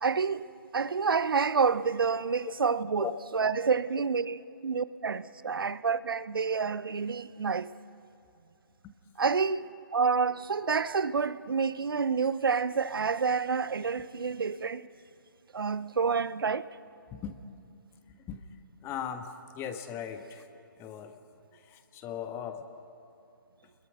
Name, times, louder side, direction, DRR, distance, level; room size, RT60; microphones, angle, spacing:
voice 1, 0.0-0.5 0.7-3.1 3.3-4.4 4.6-7.7 9.2-14.9 15.5-16.7, right 5 dB, 80° right, 0.7 m, -28 dB
voice 2, 18.1-18.5 18.8-20.5 20.8-21.2 21.5-22.7, left 9 dB, 20° left, 1.4 m, -39 dB
29.0 x 21.5 x 6.3 m
figure-of-eight pair, 135°, 12 cm